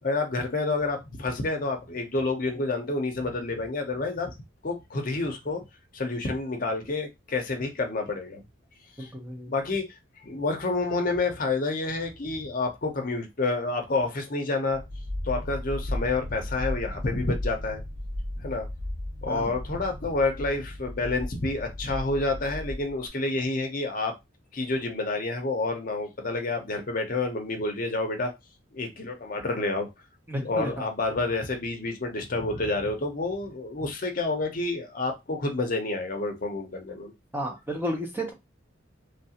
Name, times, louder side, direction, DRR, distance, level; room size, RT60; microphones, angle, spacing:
voice 1, 0.0-4.3 4.6-5.6 5.9-8.4 9.0-9.1 9.5-10.0 10.2-14.8 15.2-17.8 18.4-18.7 19.2-24.1 24.5-28.3 28.7-29.9 30.4-37.1, left 3 dB, 45° left, 4 dB, 0.6 m, -29 dB
voice 2, 9.0-9.5 19.3-19.5 30.3-30.9 37.3-38.3, equal, 10° right, 1 dB, 0.6 m, -32 dB
sound 1, 14.7-23.1, left 1 dB, 85° right, 1.0 m, -35 dB
3.2 x 2.4 x 2.8 m, 0.21 s
head